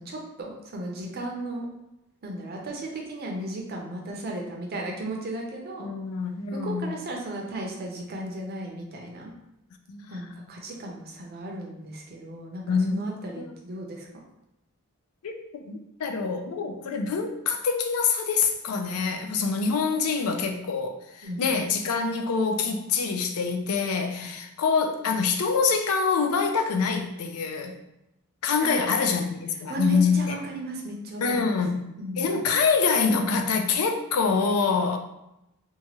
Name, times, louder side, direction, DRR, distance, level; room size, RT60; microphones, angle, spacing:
voice 1, 0.0-1.7 2.2-5.9 6.5-9.3 10.1-14.1 21.2-21.4 24.2-24.3 28.6-29.0 29.7-31.5 32.0-32.4, right 1 dB, 45° right, 0 dB, 0.6 m, -35 dB
voice 2, 5.8-7.0 9.9-10.1 12.7-13.1 13.4-13.5 15.2-15.4 15.6-27.8 28.4-30.4 31.2-31.8 32.2-35.0, left 5 dB, 80° left, 5 dB, 0.4 m, -25 dB
2.8 x 2.3 x 2.9 m, 0.88 s
head